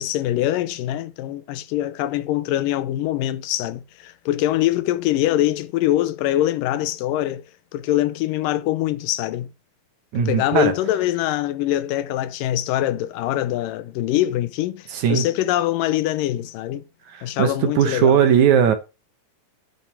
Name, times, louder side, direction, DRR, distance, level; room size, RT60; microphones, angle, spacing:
voice 1, 0.0-7.4 7.7-9.5 10.2-16.8 17.2-18.2, left 14 dB, 85° left, 2.3 m, -23 dB
voice 2, 10.1-10.7 14.9-15.3 17.1-18.7, right 8 dB, 70° right, 2.2 m, -18 dB
9.1 x 5.6 x 4.9 m
omnidirectional pair, 3.8 m